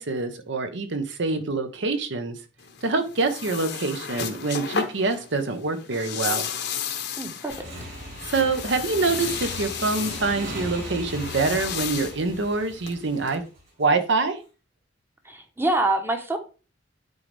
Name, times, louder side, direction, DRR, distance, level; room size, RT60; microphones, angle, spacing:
voice 1, 0.0-2.4 2.8-6.5 8.3-13.4 13.8-14.4, right 3 dB, 70° right, 0.9 m, -25 dB
sound 1, 2.6-13.4, left 7 dB, 60° left, 0.9 m, -34 dB
voice 2, 7.2-7.5 15.2-16.4, right 2 dB, 10° right, 0.9 m, -25 dB
Motorcycle / Engine, 7.5-13.9, equal, 45° right, 3.9 m, -38 dB
9.4 x 4.0 x 3.4 m
head